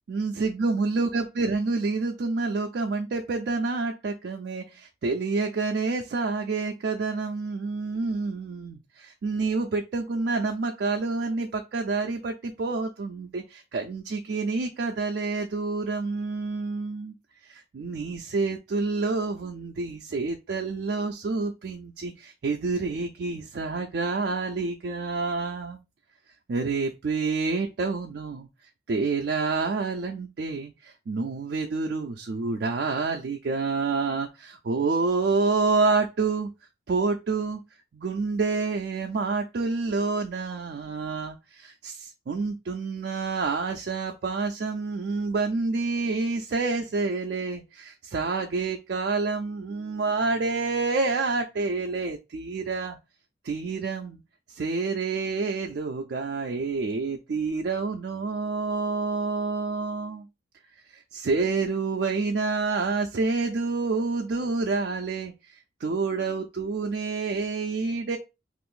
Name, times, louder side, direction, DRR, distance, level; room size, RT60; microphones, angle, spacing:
voice 1, 0.1-17.1 17.4-25.8 26.5-28.5 28.9-36.5 36.9-37.6 37.9-53.0 53.4-54.2 54.5-60.3 60.9-68.2, right 4 dB, 60° right, 0.3 m, -28 dB
2.5 x 2.5 x 3.6 m
head